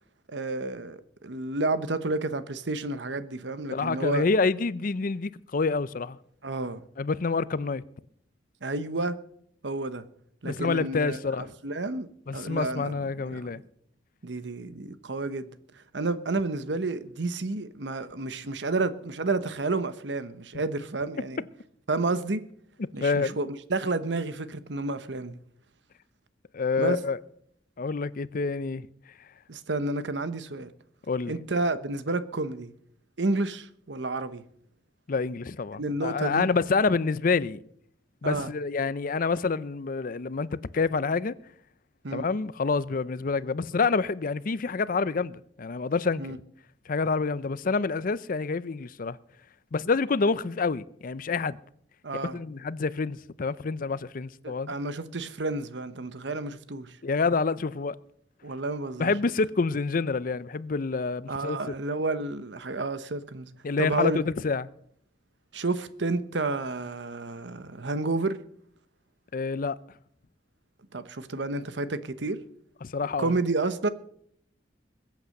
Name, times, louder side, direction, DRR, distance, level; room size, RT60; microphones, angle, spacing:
voice 1, 0.3-4.2 6.4-6.8 8.6-9.2 9.6-10.0 10.4-12.1 12.3-13.5 14.2-15.5 15.9-21.4 21.9-22.4 22.9-25.4 26.8-27.0 29.5-30.7 31.3-32.7 33.2-34.4 35.8-36.5 38.2-38.5 42.0-42.3 46.2-46.4 52.0-52.4 54.4-56.9 58.4-59.1 61.3-63.5 63.8-64.2 65.5-68.4 70.9-72.4 73.2-73.9, right 3 dB, 70° right, 1.0 m, -30 dB
voice 2, 3.7-6.2 7.0-7.8 10.4-11.5 12.3-13.6 23.0-23.4 26.5-27.2 27.8-28.9 31.1-31.4 35.1-37.6 38.2-41.3 42.1-46.4 46.9-49.2 49.7-51.6 52.2-54.7 57.0-58.0 59.0-61.6 63.6-64.7 69.3-69.8 72.8-73.3, left 4 dB, 50° left, 0.5 m, -27 dB
21.5 x 8.3 x 6.6 m
head